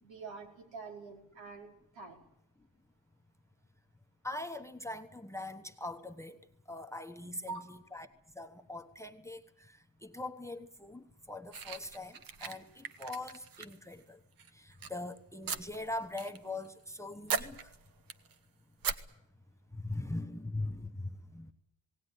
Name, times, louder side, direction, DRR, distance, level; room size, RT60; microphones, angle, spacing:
voice 1, 0.0-1.7 1.9-2.2 7.2-7.6, right 4 dB, 80° right, 2 dB, 5.0 m, -45 dB
voice 2, 4.2-6.4 6.7-8.1 8.3-14.2 14.5-17.7 19.7-21.5, left 2 dB, 5° left, 9 dB, 1.1 m, -42 dB
sound 1, 11.5-14.0 14.4-14.9 15.5-16.4 16.6-17.0 17.3-18.4 18.8-19.0, right 6 dB, 50° right, 1.2 m, -39 dB
18.5 x 18.5 x 9.9 m, 0.76 s
cardioid pair, 140°, 44 cm